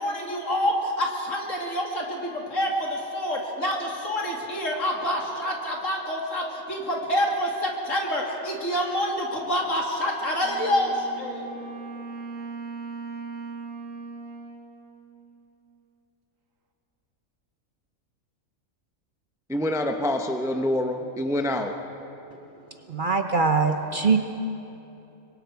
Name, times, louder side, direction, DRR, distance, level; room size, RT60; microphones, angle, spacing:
voice 1, 0.0-11.5, equal, 65° left, 3.0 m, -27 dB
Wind instrument woodwind instrument, 10.4-15.9, right 4 dB, 70° right, 1.7 m, -39 dB
voice 2, 19.5-21.8, left 1 dB, 5° right, 0.7 m, -26 dB
voice 3, 22.9-24.2, right 4 dB, 45° right, 0.9 m, -22 dB
25.5 x 23.0 x 4.7 m
omnidirectional pair, 1.4 m